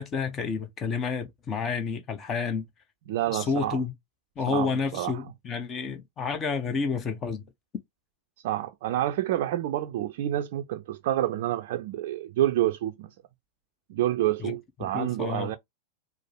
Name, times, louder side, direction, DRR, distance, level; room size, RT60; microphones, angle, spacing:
voice 1, 0.0-2.7 3.3-3.9 4.4-7.5 14.4-14.6 14.8-15.6, left 5 dB, 25° left, 0.7 m, -30 dB
voice 2, 3.1-3.8 4.5-5.2 8.4-13.1 13.9-15.6, right 13 dB, 50° right, 0.4 m, -28 dB
4.6 x 2.0 x 4.4 m
figure-of-eight pair, 90°, 0 cm